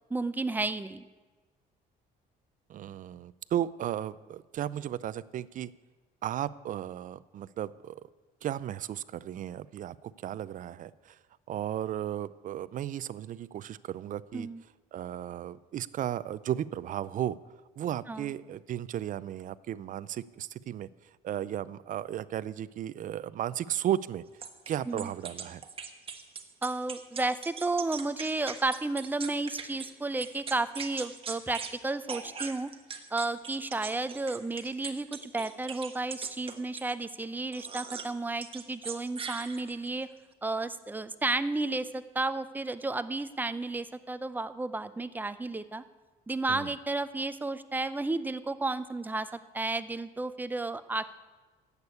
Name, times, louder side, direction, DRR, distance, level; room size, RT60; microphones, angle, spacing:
voice 1, 0.1-1.1 14.3-14.6 18.1-18.3 24.9-25.1 26.6-32.7 33.1-40.1 40.4-45.8 46.3-49.3 49.5-51.1, right 2 dB, 10° right, 12 dB, 0.6 m, -32 dB
voice 2, 2.7-5.7 6.2-8.0 8.4-11.2 11.5-14.5 14.9-17.4 17.8-20.9 21.2-24.2 24.7-25.6 46.5-46.7, right 11 dB, 50° right, 18 dB, 0.5 m, -35 dB
sound 1, 24.4-29.9 30.2-31.8 32.1-36.9 37.5-38.1 38.4-39.9, right 6 dB, 35° right, 1.3 m, -40 dB
11.5 x 8.3 x 8.4 m, 1.3 s
cardioid pair, 110°, 17 cm